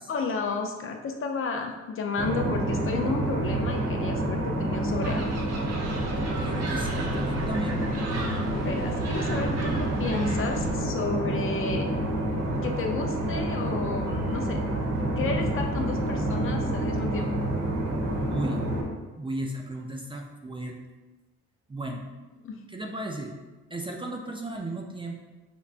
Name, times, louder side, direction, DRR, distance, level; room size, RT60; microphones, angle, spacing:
voice 1, 0.1-5.3 8.5-11.9 12.6-14.6 15.2-17.3 22.4-22.6, left 4 dB, 45° left, 4 dB, 0.5 m, -32 dB
sound 1, 2.2-18.8, right 1 dB, 75° right, 1.2 m, -28 dB
sound 2, 5.0-10.7, right 2 dB, 55° right, 0.8 m, -37 dB
voice 2, 6.4-7.9 18.3-18.7 19.2-20.8 21.7-22.0 22.7-23.3 23.7-25.2, right 1 dB, 15° right, 1 dB, 0.4 m, -34 dB
5.5 x 2.2 x 2.4 m, 1.1 s
cardioid pair, 90°, 30 cm